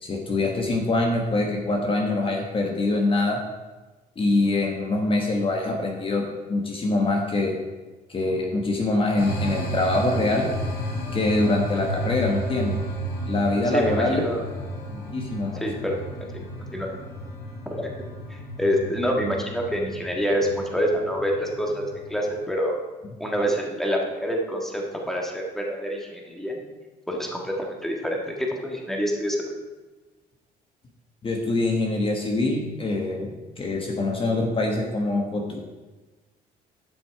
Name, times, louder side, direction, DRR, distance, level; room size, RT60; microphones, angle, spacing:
voice 1, 0.0-3.4 4.2-6.2 6.5-7.6 8.1-10.5 11.1-12.7 13.2-14.2 14.9-15.6 31.2-35.6, left 2 dB, 30° left, 1 dB, 1.3 m, -24 dB
sound 1, 9.2-22.4, equal, 75° left, 2.4 m, -33 dB
voice 2, 13.7-14.4 15.5-16.0 16.3-16.5 16.7-16.9 17.8-17.9 18.6-22.8 23.2-26.6 27.1-29.4, equal, ahead, 0 dB, 1.7 m, -27 dB
11.0 x 6.2 x 4.7 m, 1.2 s
cardioid pair, 110°, 17 cm